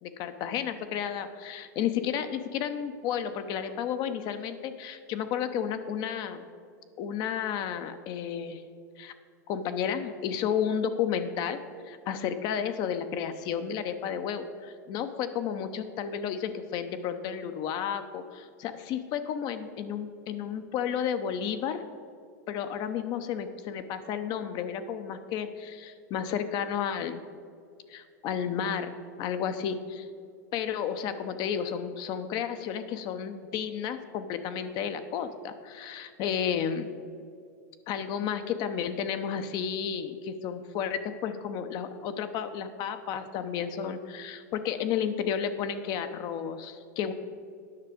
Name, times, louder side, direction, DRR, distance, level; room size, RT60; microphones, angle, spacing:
voice 1, 0.0-6.5 7.0-8.6 9.0-9.1 9.5-11.6 11.9-21.8 22.5-27.2 27.9-30.1 30.5-36.9 37.9-47.1, left 8 dB, 45° left, 9 dB, 0.7 m, -32 dB
9.6 x 5.9 x 5.0 m, 2.2 s
hypercardioid pair, 105°, 10 cm